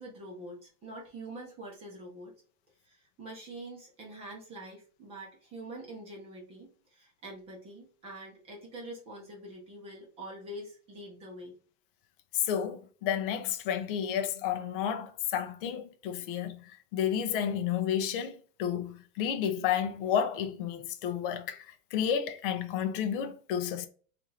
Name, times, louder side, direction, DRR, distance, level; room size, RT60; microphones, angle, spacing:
voice 1, 0.0-2.3 2.8-11.5, right 1 dB, 15° right, 0.7 m, -45 dB
voice 2, 12.3-23.9, left 9 dB, 40° left, 0.4 m, -31 dB
4.2 x 2.5 x 3.1 m
supercardioid pair, 175°, 44 cm